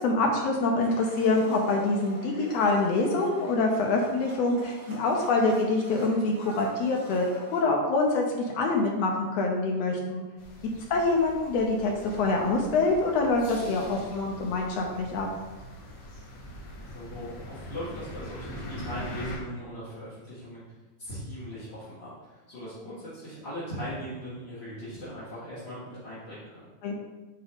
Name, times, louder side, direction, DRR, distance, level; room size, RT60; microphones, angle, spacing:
voice 1, 0.0-10.2 10.9-15.3 26.8-26.9, left 3 dB, 85° left, 0 dB, 1.5 m, -25 dB
Domestic sounds home sounds, 0.8-7.6, right 1 dB, 45° right, 1.4 m, -46 dB
sound 1, 10.4-19.4, left 1 dB, 60° left, 2.0 m, -43 dB
voice 2, 16.9-20.6 21.0-26.6, equal, 35° left, -11 dB, 0.9 m, -39 dB
7.9 x 4.0 x 3.5 m, 1.2 s
omnidirectional pair, 3.7 m